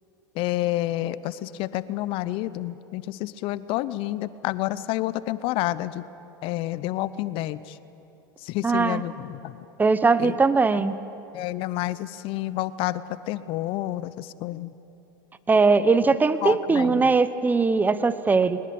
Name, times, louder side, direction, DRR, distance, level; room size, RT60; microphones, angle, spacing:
voice 1, 0.4-6.0 6.4-7.8 8.4-9.6 10.2-10.3 10.7-10.8 11.3-14.7 16.4-17.0, left 15 dB, 50° left, 17 dB, 0.7 m, -29 dB
voice 2, 8.6-9.0 9.8-10.9 15.5-18.6, right 4 dB, 15° right, 14 dB, 1.0 m, -20 dB
22.5 x 20.0 x 8.6 m, 2.9 s
hypercardioid pair, 95°, 11 cm